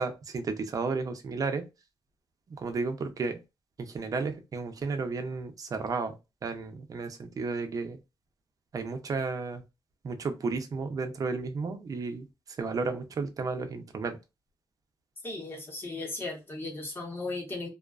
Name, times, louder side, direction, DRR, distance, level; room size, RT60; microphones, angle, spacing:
voice 1, 0.0-1.6 2.5-3.4 3.8-6.2 6.4-8.0 8.7-9.6 10.0-12.3 12.6-14.2, right 4 dB, 45° right, 0.5 m, -33 dB
voice 2, 15.2-17.7, left 2 dB, 25° left, 0.9 m, -36 dB
2.4 x 2.2 x 2.3 m
wide cardioid pair, 150°, 9 cm